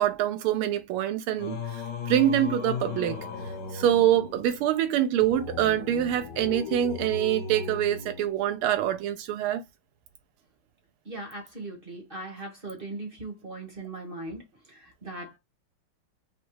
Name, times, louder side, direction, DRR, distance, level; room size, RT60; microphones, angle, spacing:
voice 1, 0.0-3.2 3.7-9.6, right 11 dB, 85° right, 1.5 m, -25 dB
Singing, 1.4-8.8, left 6 dB, 60° left, 1.4 m, -37 dB
voice 2, 11.0-14.4 14.7-15.4, right 2 dB, 30° right, 1.1 m, -39 dB
4.2 x 2.2 x 4.6 m
omnidirectional pair, 2.3 m